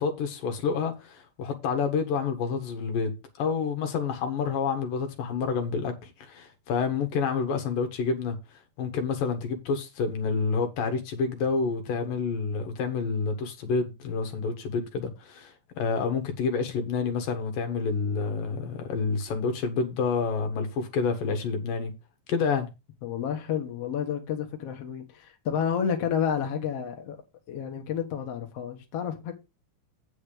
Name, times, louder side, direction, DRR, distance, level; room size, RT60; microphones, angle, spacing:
voice 1, 0.0-3.1 3.4-8.4 8.8-21.9 22.3-22.7, left 5 dB, 75° left, 3.3 m, -28 dB
voice 2, 23.0-27.2 27.5-29.3, left 8 dB, 50° left, 2.4 m, -30 dB
8.6 x 6.5 x 5.1 m
omnidirectional pair, 4.0 m